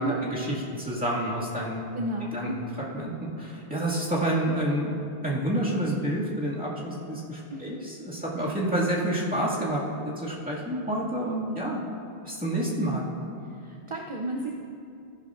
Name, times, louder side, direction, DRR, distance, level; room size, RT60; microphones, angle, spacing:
voice 1, 0.0-1.8 2.3-2.5 2.9-3.1 3.4-4.9 5.2-11.8 12.2-13.1, right 1 dB, 10° right, -7 dB, 2.0 m, -28 dB
voice 2, 1.9-2.6 7.5-7.7 13.6-14.5, right 1 dB, 35° right, -1 dB, 0.5 m, -32 dB
14.5 x 11.0 x 2.5 m, 2.5 s
omnidirectional pair, 1.1 m